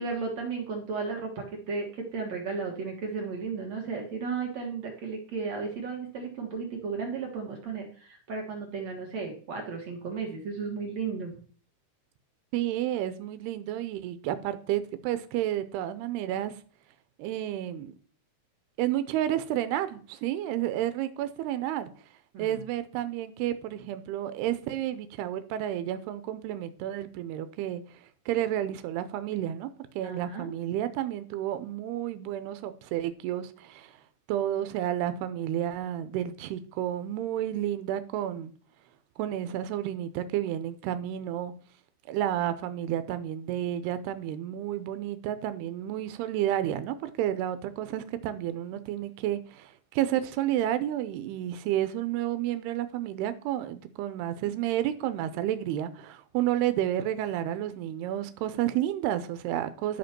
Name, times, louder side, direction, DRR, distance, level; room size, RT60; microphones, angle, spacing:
voice 1, 0.0-11.3 22.3-22.6 30.0-30.5, right 4 dB, 55° right, 2.3 m, -34 dB
voice 2, 12.5-16.6 17.2-17.9 18.8-21.9 22.4-29.7 30.0-34.0 34.3-38.5 39.2-41.5 42.1-60.0, right 12 dB, 90° right, 2.7 m, -31 dB
12.0 x 5.2 x 5.9 m
omnidirectional pair, 4.5 m